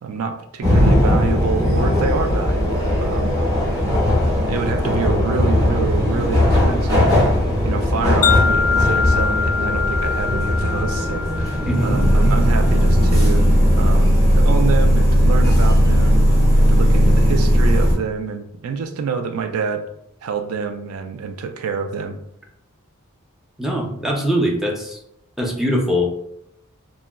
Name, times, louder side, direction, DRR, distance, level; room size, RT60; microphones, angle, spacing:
voice 1, 0.0-3.4 4.4-7.2 7.6-13.5 13.7-16.3 16.6-19.9 20.2-22.2, right 5 dB, 75° right, 7 dB, 0.4 m, -27 dB
sound 1, 0.6-17.9, equal, 30° right, 1.0 m, -17 dB
Wind chime, 8.2-12.5, left 6 dB, 75° left, 0.3 m, -23 dB
voice 2, 11.6-11.9 23.6-25.0 25.4-26.1, equal, ahead, -1 dB, 0.4 m, -22 dB
3.6 x 2.1 x 2.2 m, 0.76 s
head